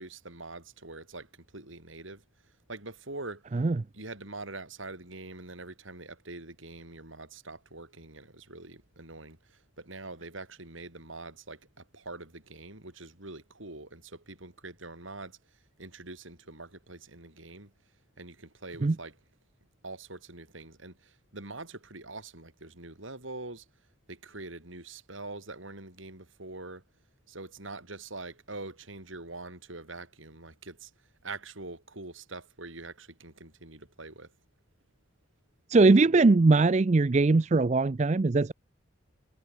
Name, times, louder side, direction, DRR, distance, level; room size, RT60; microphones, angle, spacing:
voice 1, 0.0-3.5 3.9-17.7 18.2-19.2 19.8-23.7 24.1-26.8 27.3-30.9 31.2-34.3, right 2 dB, 80° right, 6.5 m, -44 dB
voice 2, 35.7-38.5, right 3 dB, 35° right, 0.4 m, -21 dB
head